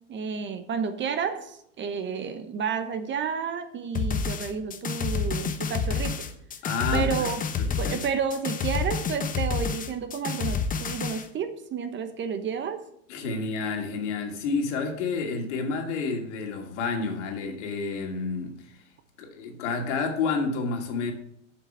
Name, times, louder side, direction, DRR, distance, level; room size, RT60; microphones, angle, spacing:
voice 1, 0.1-6.2 6.9-7.4 7.7-12.8, right 6 dB, 30° right, 1.1 m, -31 dB
sound 1, 3.9-11.3, left 5 dB, 20° left, 1.0 m, -29 dB
voice 2, 6.6-7.3 7.6-8.0 13.1-18.8 19.2-21.1, left 4 dB, 70° left, 2.4 m, -30 dB
7.9 x 5.9 x 7.9 m
hypercardioid pair, 105°, 37 cm